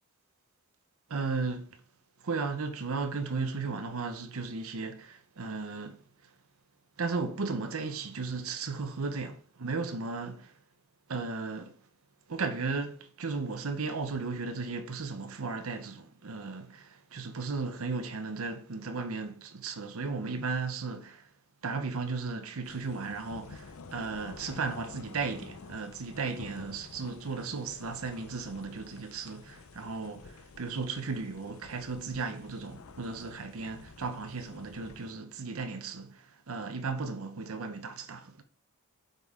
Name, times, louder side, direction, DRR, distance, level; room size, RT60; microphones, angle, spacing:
voice 1, 1.1-1.7 2.2-6.0 7.0-10.5 11.1-11.7 12.3-21.3 21.6-38.4, right 4 dB, 70° right, 0.8 m, -35 dB
sound 1, 22.6-35.1, left 4 dB, 75° left, 0.7 m, -50 dB
8.3 x 5.1 x 3.7 m
head